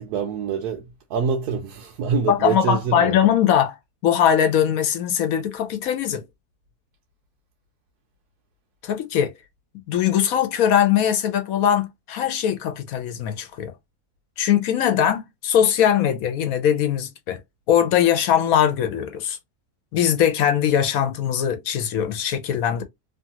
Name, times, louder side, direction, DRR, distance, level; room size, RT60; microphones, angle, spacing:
voice 1, 0.0-3.2, right 6 dB, 85° right, 1.1 m, -25 dB
voice 2, 2.3-3.8 4.0-6.2 8.8-9.3 9.9-13.7 14.4-17.4 17.7-19.4 19.9-22.8, left 9 dB, 70° left, 1.0 m, -21 dB
3.1 x 2.4 x 2.7 m
omnidirectional pair, 1.7 m